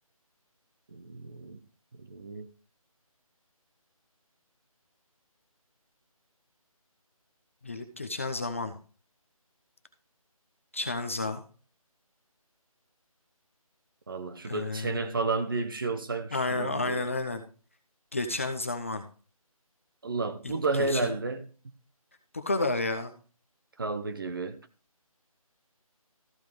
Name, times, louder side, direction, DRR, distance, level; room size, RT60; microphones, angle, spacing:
voice 1, 0.9-1.6 2.0-2.5 14.1-17.1 20.0-21.5 23.8-24.6, right 3 dB, 35° right, 0.9 m, -31 dB
voice 2, 7.6-8.7 10.7-11.4 14.4-15.0 16.3-17.4 18.1-19.0 20.7-21.1 22.3-23.1, left 2 dB, 20° left, 0.6 m, -31 dB
14.0 x 4.7 x 5.2 m
figure-of-eight pair, 170°, 19 cm